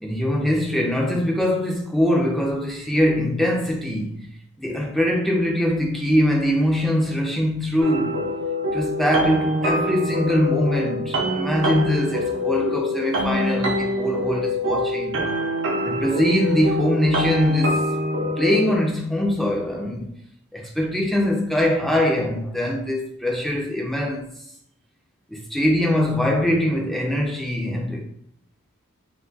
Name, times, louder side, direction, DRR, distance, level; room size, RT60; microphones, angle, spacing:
voice 1, 0.0-4.3 4.6-8.2 8.7-15.2 15.8-17.9 18.4-20.1 20.5-24.3 25.3-28.1, left 1 dB, ahead, 0.4 m, -22 dB
sound 1, 7.8-18.8, left 1 dB, 60° right, 0.5 m, -25 dB
2.2 x 2.2 x 3.9 m
head